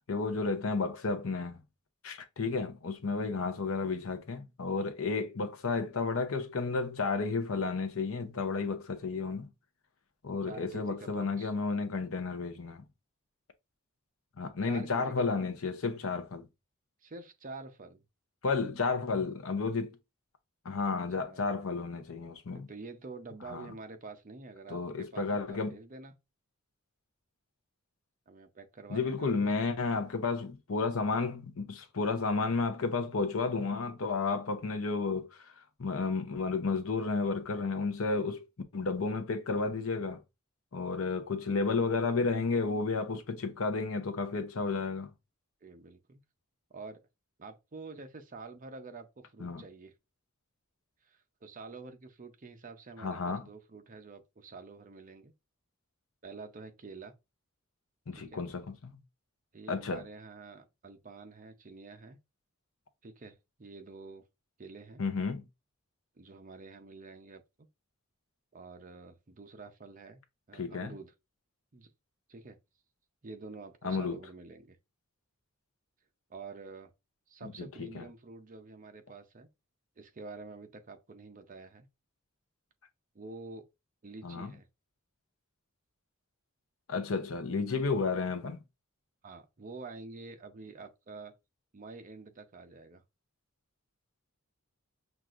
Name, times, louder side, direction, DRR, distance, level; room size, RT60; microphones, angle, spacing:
voice 1, 0.1-1.6 2.0-9.5 10.2-12.9 14.4-16.4 18.4-20.0 20.6-22.7 23.5-23.7 24.7-25.8 28.9-35.5 35.8-38.5 38.7-40.2 40.7-45.1 49.4-49.6 53.0-53.5 58.1-59.0 59.7-60.1 65.0-65.4 70.5-70.9 73.8-74.2 77.4-78.0 84.2-84.5 86.9-88.6, left 4 dB, 70° left, 0.7 m, -32 dB
voice 2, 10.4-11.5 14.6-15.4 17.0-18.0 21.2-21.5 22.7-26.1 28.3-29.5 45.6-46.2 46.7-47.0 47.4-49.9 51.0-55.3 56.2-57.1 58.1-58.4 59.5-62.2 63.0-64.2 64.6-65.0 66.2-67.4 68.5-70.2 70.5-71.1 71.7-71.9 72.3-72.6 73.2-74.8 76.3-76.9 77.3-79.5 80.0-81.9 83.1-83.6 84.0-84.7 89.2-91.3 91.7-93.0, right 3 dB, 40° right, 0.6 m, -48 dB
6.0 x 2.4 x 2.5 m
head